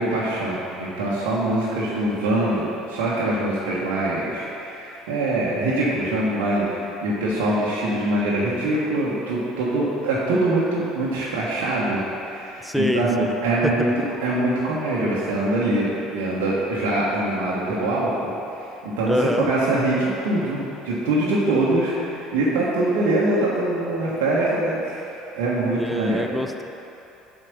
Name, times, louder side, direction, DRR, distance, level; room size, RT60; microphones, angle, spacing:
voice 1, 0.0-13.9 14.2-25.0 25.3-26.2, right 2 dB, 65° right, -7 dB, 1.3 m, -23 dB
voice 2, 12.6-13.3 13.6-13.9 19.1-19.5 25.7-26.6, left 1 dB, ahead, 6 dB, 0.5 m, -25 dB
7.6 x 5.1 x 6.7 m, 2.9 s
figure-of-eight pair, 60°, 0 cm